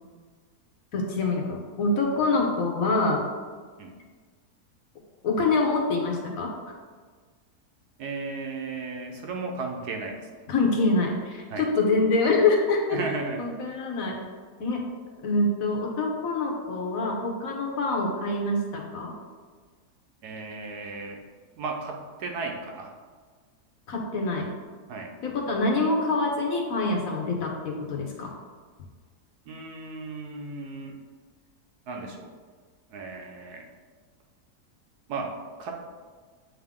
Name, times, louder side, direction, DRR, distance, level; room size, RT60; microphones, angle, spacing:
voice 1, 0.9-3.2 5.2-6.5 10.5-13.0 13.4-14.2 14.6-14.8 15.2-19.1 23.9-24.5 25.2-28.3, left 3 dB, 60° left, 1 dB, 1.3 m, -25 dB
voice 2, 8.0-10.3 11.5-11.7 12.9-13.5 20.2-21.2 21.6-22.9 24.9-25.1 29.5-31.0 31.9-32.3 32.9-33.6 35.1-35.3 35.6-35.8, right 3 dB, 75° right, 2 dB, 1.3 m, -35 dB
8.0 x 3.7 x 3.6 m, 1.5 s
omnidirectional pair, 1.7 m